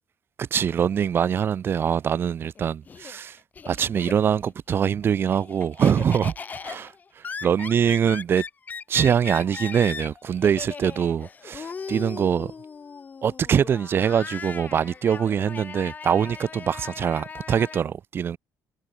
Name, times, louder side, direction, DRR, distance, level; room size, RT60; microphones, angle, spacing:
voice 1, 0.4-3.4 3.7-6.3 6.6-6.9 7.4-8.4 8.9-12.5 13.2-18.4, right 8 dB, 30° right, 0.5 m, -23 dB
Laughter, 2.4-4.5 4.9-17.8, left 5 dB, 25° left, 1.5 m, -38 dB
cardioid pair, 180°, 7 cm